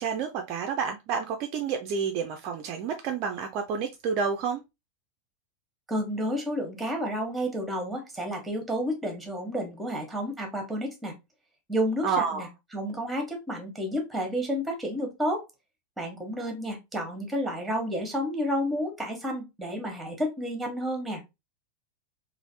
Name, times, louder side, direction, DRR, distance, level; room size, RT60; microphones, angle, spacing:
voice 1, 0.0-4.6 12.0-12.5, right 6 dB, 40° right, 0.4 m, -29 dB
voice 2, 5.9-11.1 11.7-12.5 12.7-15.4 16.0-21.2, equal, 5° right, 1.1 m, -30 dB
3.1 x 2.4 x 2.7 m
figure-of-eight pair, 90°, 0 cm